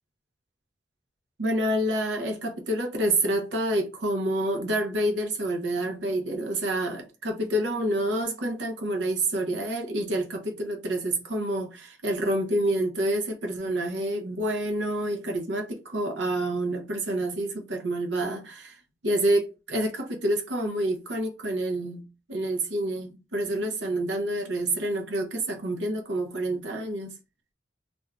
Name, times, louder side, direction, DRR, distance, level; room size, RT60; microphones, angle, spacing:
voice 1, 1.4-18.8 19.0-22.0 22.3-27.1, right 1 dB, 80° right, 0.8 m, -28 dB
2.6 x 2.3 x 3.3 m
head